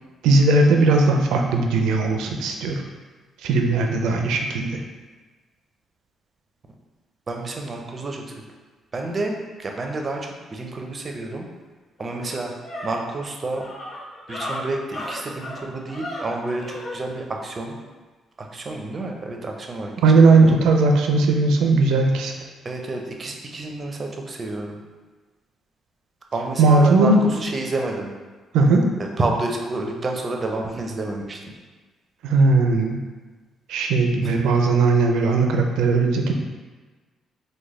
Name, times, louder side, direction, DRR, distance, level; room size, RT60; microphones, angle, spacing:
voice 1, 0.2-2.8 3.4-4.8 20.0-22.3 26.6-27.2 28.5-28.8 32.2-33.0 33.7-36.3, right 3 dB, 90° right, 3 dB, 0.4 m, -18 dB
voice 2, 7.3-8.2 8.9-11.5 12.0-12.5 12.8-13.6 14.3-17.8 18.4-19.9 20.3-20.4 22.6-24.8 26.3-28.1 29.0-31.4 34.2-34.4, right 2 dB, 35° right, 2 dB, 0.5 m, -29 dB
sound 1, 11.5-11.6 12.0-17.0, left 1 dB, 60° left, 1.1 m, -35 dB
3.2 x 2.2 x 3.6 m, 1.3 s
cardioid pair, 90°, 0 cm